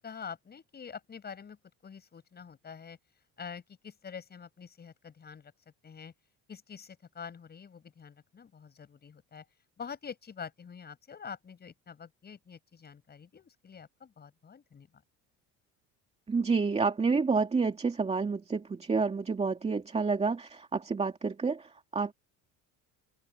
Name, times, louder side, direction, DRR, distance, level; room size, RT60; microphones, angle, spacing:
voice 1, 0.0-1.6 1.8-3.0 3.4-5.5 5.8-6.1 6.5-9.4 9.8-14.9, left 6 dB, 30° left, 7.6 m, -46 dB
voice 2, 16.3-22.1, right 4 dB, 20° right, 2.5 m, -29 dB
open air
cardioid pair, 135°, 32 cm